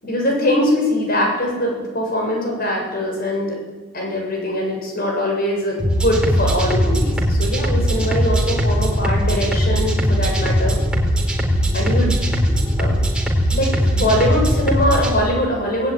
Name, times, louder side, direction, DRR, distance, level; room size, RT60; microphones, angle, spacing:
voice 1, 0.0-3.6 3.9-10.8 11.7-12.2 12.8-12.9 13.5-15.9, left 1 dB, 45° left, 0 dB, 7.9 m, -22 dB
sound 1, 5.8-15.1, equal, 5° right, 3.9 m, -19 dB
27.0 x 19.0 x 9.4 m, 1.3 s
head